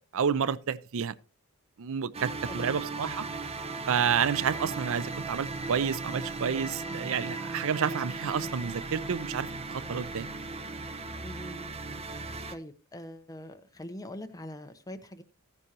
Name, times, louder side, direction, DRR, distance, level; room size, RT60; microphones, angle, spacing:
voice 1, 0.1-1.1 1.8-3.3 3.9-10.3, right 7 dB, 65° right, 0.5 m, -30 dB
sound 1, 2.1-12.6, right 3 dB, 30° right, 0.8 m, -37 dB
voice 2, 2.5-2.8 11.2-11.7 12.5-15.2, left 1 dB, 15° left, 0.9 m, -42 dB
14.5 x 9.7 x 2.9 m
head